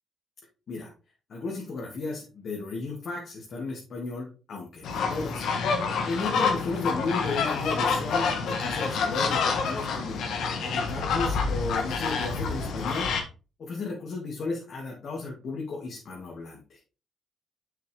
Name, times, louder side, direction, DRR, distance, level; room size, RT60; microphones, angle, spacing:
voice 1, 1.3-5.5 6.0-10.2 10.6-13.1 13.6-16.8, left 3 dB, 55° left, -2 dB, 2.2 m, -34 dB
sound 1, 4.8-13.2, left 5 dB, 75° left, 1.4 m, -27 dB
6.8 x 6.1 x 3.4 m, 0.34 s
cardioid pair, 90°, 0 cm